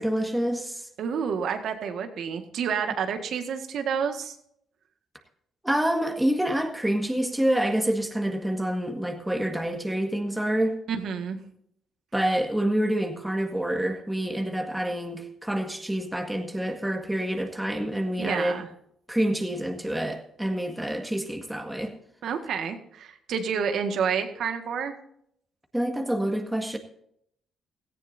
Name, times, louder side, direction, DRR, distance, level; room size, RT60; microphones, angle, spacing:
voice 1, 0.0-0.9 5.6-10.8 12.1-18.6 19.1-21.9 25.7-26.8, right 1 dB, 5° right, 4 dB, 1.7 m, -27 dB
voice 2, 1.0-4.4 10.9-11.4 18.2-18.7 22.2-24.9, right 6 dB, 70° right, 6 dB, 1.8 m, -29 dB
17.5 x 14.5 x 2.7 m, 0.71 s
cardioid pair, 90°, 0 cm